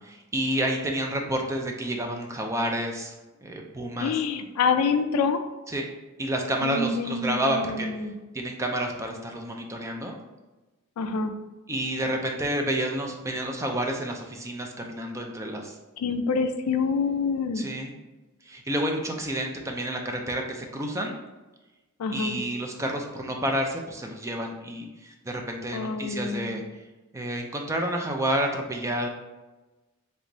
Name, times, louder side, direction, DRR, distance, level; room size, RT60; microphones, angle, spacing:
voice 1, 0.0-3.1 3.4-4.1 5.7-5.8 6.2-7.9 8.3-10.2 11.7-15.8 17.6-17.9 18.4-21.1 22.1-26.6 27.1-29.1, right 1 dB, 15° right, 2 dB, 0.3 m, -29 dB
voice 2, 4.0-5.4 6.6-8.1 11.0-11.3 16.0-17.7 22.0-22.4 25.7-26.6, left 5 dB, 85° left, 8 dB, 0.3 m, -26 dB
3.3 x 3.0 x 2.6 m, 1.1 s
head